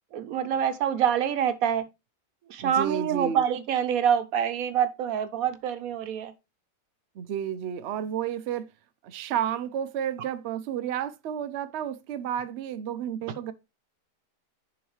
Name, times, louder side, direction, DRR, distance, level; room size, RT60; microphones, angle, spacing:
voice 1, 0.1-1.8 2.5-6.3, right 9 dB, 65° right, 1.1 m, -26 dB
voice 2, 2.6-3.4 7.2-8.7 9.0-13.5, right 9 dB, 80° right, 0.6 m, -31 dB
10.0 x 3.9 x 3.1 m
omnidirectional pair, 1.8 m